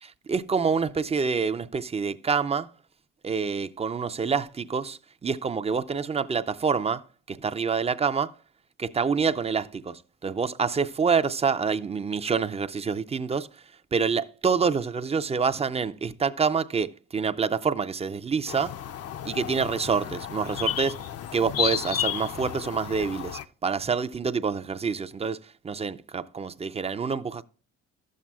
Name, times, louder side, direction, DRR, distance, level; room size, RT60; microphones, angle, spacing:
voice 1, 0.0-2.7 3.2-8.3 8.8-13.5 13.9-18.7 19.2-20.9 21.3-27.4, right 5 dB, 20° right, 0.4 m, -27 dB
sound 1, 18.5-23.4, left 10 dB, 55° left, 0.5 m, -32 dB
12.0 x 7.4 x 2.3 m
cardioid pair, 90°, 30 cm